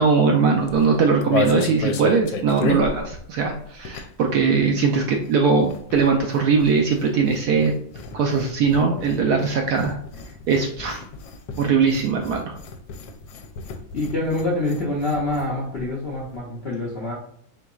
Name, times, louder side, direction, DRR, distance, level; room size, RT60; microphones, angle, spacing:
voice 1, 0.0-7.7 8.1-10.0 10.5-11.0 11.6-12.6, right 5 dB, 75° right, 2 dB, 0.9 m, -20 dB
sound 1, 0.6-4.3 4.6-15.5 15.8-16.4, left 4 dB, 80° left, 1.3 m, -33 dB
voice 2, 13.9-17.1, left 2 dB, 60° left, -4 dB, 0.6 m, -26 dB
4.5 x 3.9 x 2.3 m, 0.66 s
omnidirectional pair, 2.1 m